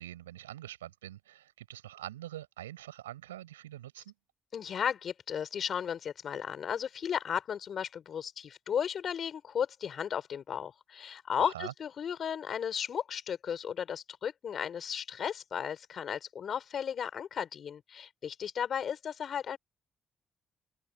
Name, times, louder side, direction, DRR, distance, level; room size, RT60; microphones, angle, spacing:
voice 1, 0.0-4.1 11.4-11.7, right 13 dB, 85° right, 7.3 m, -44 dB
voice 2, 4.5-19.6, left 8 dB, 55° left, 4.4 m, -35 dB
open air
hypercardioid pair, 40°, 0 cm